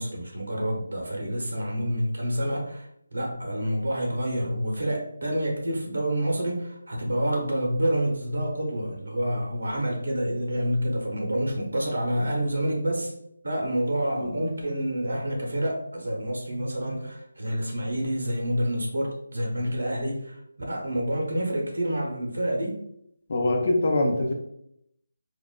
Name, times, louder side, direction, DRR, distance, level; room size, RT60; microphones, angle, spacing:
voice 1, 0.0-20.4 20.7-22.8, equal, 80° right, 0 dB, 0.8 m, -28 dB
voice 2, 23.3-24.3, left 1 dB, 50° left, 2 dB, 0.7 m, -24 dB
3.9 x 2.4 x 2.2 m, 0.75 s
figure-of-eight pair, 160°, 0 cm